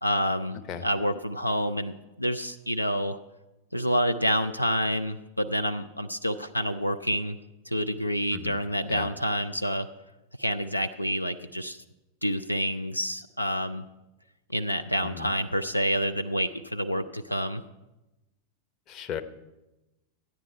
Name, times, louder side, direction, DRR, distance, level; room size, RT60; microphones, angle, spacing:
voice 1, 0.0-3.2 3.7-7.4 7.7-9.9 10.4-11.8 12.2-13.8 14.5-17.6, equal, 90° left, 9 dB, 0.4 m, -28 dB
voice 2, 18.9-19.2, left 8 dB, 35° left, 8 dB, 0.8 m, -36 dB
14.0 x 9.7 x 4.4 m, 1.0 s
figure-of-eight pair, 90°, 0 cm